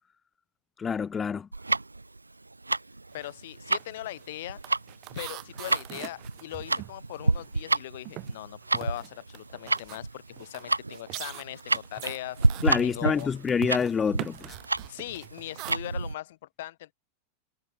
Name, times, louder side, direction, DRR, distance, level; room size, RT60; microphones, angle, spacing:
voice 1, 0.8-1.5 12.6-14.6, left 6 dB, 20° left, 0.5 m, -27 dB
Tick-tock, 1.5-16.1, right 2 dB, 80° right, 0.5 m, -30 dB
voice 2, 3.1-4.6 5.1-13.3 14.9-16.9, left 15 dB, 55° left, 4.6 m, -40 dB
sound 1, 3.1-3.4 3.7-7.7 8.0-15.7, right 21 dB, 40° right, 1.2 m, -43 dB
figure-of-eight pair, 90°, 0 cm